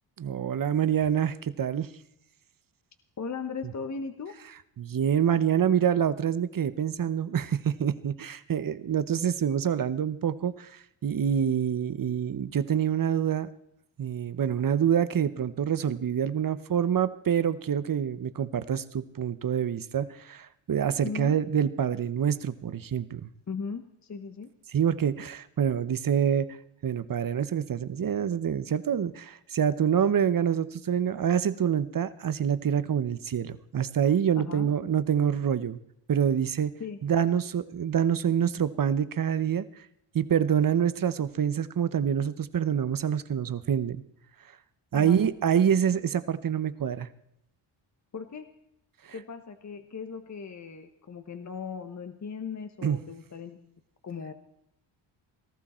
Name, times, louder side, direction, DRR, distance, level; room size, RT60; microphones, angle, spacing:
voice 1, 0.2-1.9 4.8-13.5 14.0-23.3 24.7-26.5 26.8-35.8 36.1-36.7 37.0-39.7 40.1-44.0 44.9-47.1 52.8-53.0, right 8 dB, 40° right, 14 dB, 0.9 m, -26 dB
voice 2, 3.2-4.4 21.0-21.4 23.5-24.5 34.4-34.7 36.8-37.0 44.9-45.2 48.1-48.5 49.1-53.6 54.0-54.3, left 5 dB, 35° left, 8 dB, 1.1 m, -37 dB
18.5 x 14.5 x 4.4 m, 0.76 s
cardioid pair, 105°, 50 cm